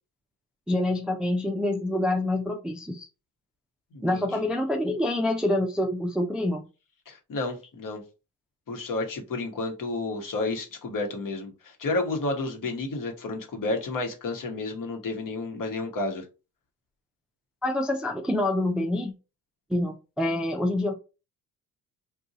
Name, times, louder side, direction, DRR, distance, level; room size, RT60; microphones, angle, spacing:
voice 1, 0.7-3.1 4.0-6.6 17.6-19.1 19.7-20.9, left 1 dB, ahead, 0.4 m, -26 dB
voice 2, 3.9-4.4 7.1-8.0 8.7-16.2, left 3 dB, 50° left, 1.1 m, -31 dB
2.6 x 2.3 x 3.9 m
supercardioid pair, 60°, 41 cm